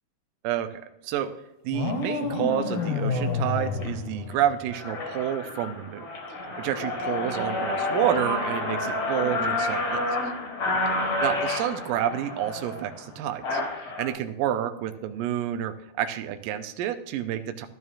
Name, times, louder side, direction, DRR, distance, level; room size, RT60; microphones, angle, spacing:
voice 1, 1.6-6.1 6.4-10.0 11.2-17.7, right 11 dB, 80° right, 8 dB, 2.2 m, -29 dB
sound 1, 1.7-4.9, left 4 dB, 85° left, 3.3 m, -29 dB
sound 2, 1.9-2.1 2.7-3.0 3.4-3.9 4.3-4.4 4.6-14.1, left 2 dB, 50° left, 1.9 m, -29 dB
12.5 x 12.0 x 2.5 m, 0.88 s
omnidirectional pair, 4.6 m